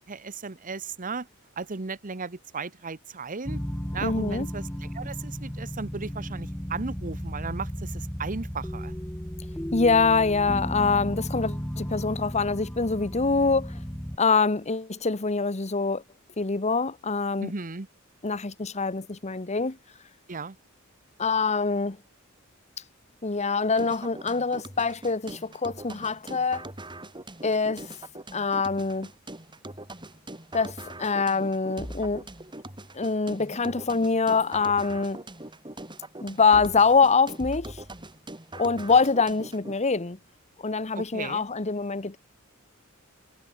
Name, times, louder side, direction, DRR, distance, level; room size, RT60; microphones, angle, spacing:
voice 1, 0.1-1.3 1.6-3.6 3.9-8.9 17.4-17.9 20.3-20.6 41.0-41.5, right 4 dB, 40° right, 1.0 m, -35 dB
sound 1, 3.5-14.2, equal, 10° left, 2.2 m, -34 dB
voice 2, 4.0-4.5 9.7-13.7 14.2-16.0 16.4-17.5 18.2-19.8 21.2-22.0 23.2-26.7 27.4-27.9 28.3-29.1 30.5-32.3 32.9-35.2 36.2-37.8 38.5-40.2 40.6-42.2, left 4 dB, 35° left, 1.1 m, -24 dB
sound 2, 23.8-39.8, right 1 dB, 20° right, 6.0 m, -42 dB
head